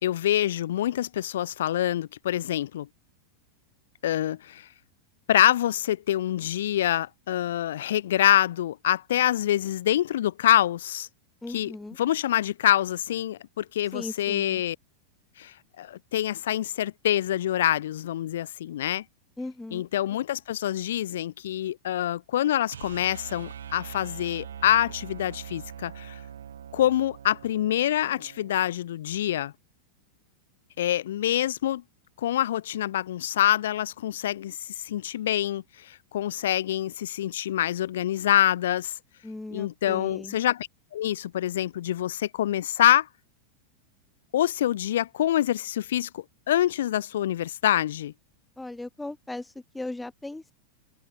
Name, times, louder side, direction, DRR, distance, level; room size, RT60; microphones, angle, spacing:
voice 1, 0.0-2.9 4.0-4.7 5.3-11.1 11.5-11.7 12.0-14.8 15.4-19.0 19.7-26.2 26.7-29.5 30.8-31.8 32.2-38.9 39.5-43.1 44.3-48.1, left 12 dB, 60° left, 1.3 m, -26 dB
voice 2, 11.4-12.0 13.9-14.6 19.4-19.8 39.2-40.4 48.6-50.5, left 2 dB, 5° left, 1.1 m, -38 dB
sound 1, 22.7-28.8, right 9 dB, 65° right, 1.4 m, -43 dB
figure-of-eight pair, 90°, 0 cm